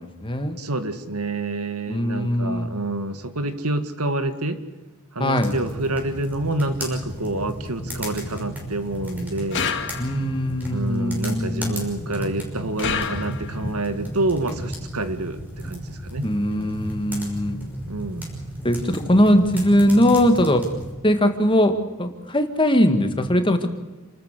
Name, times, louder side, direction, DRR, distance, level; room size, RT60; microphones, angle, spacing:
voice 1, 0.0-0.6 1.9-2.7 5.2-5.5 10.0-11.8 16.2-17.6 18.6-20.6 21.0-23.7, equal, 25° left, 7 dB, 1.9 m, -20 dB
voice 2, 0.6-4.6 5.1-9.7 10.7-16.3 17.9-18.6, right 2 dB, 90° right, 9 dB, 2.0 m, -28 dB
sound 1, 5.4-20.9, equal, 10° right, 6.0 m, -34 dB
sound 2, 9.5-10.4 12.8-13.7, left 6 dB, 55° left, 1.9 m, -28 dB
28.5 x 13.5 x 8.3 m, 1.2 s
head